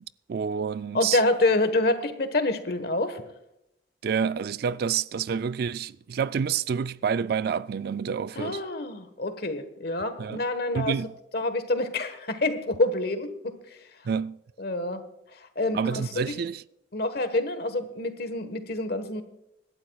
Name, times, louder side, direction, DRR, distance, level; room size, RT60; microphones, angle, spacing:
voice 1, 0.3-1.2 4.0-8.6 10.2-10.4 10.7-11.1 14.0-14.4 15.7-16.6, right 6 dB, 60° right, 0.3 m, -28 dB
voice 2, 0.9-3.2 8.4-11.0 11.3-13.5 14.6-15.0 15.6-16.3 16.9-19.2, left 2 dB, 60° left, 1.3 m, -27 dB
25.5 x 11.5 x 2.3 m
head